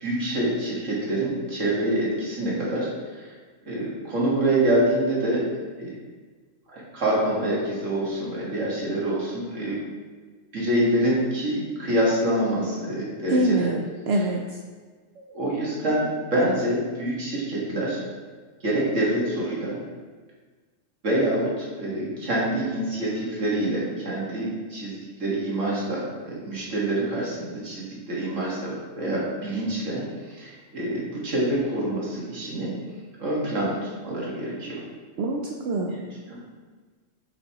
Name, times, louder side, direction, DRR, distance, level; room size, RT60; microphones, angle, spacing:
voice 1, 0.0-2.9 3.7-5.4 5.8-5.9 6.7-9.8 10.5-13.7 15.2-18.0 18.6-19.8 21.0-24.9 25.2-32.7 33.2-34.8 35.9-36.0, right 1 dB, 80° right, -5 dB, 2.1 m, -26 dB
voice 2, 13.3-14.6 35.2-35.9, right 1 dB, 65° right, 1 dB, 0.8 m, -25 dB
7.8 x 5.1 x 2.9 m, 1.4 s
omnidirectional pair, 1.3 m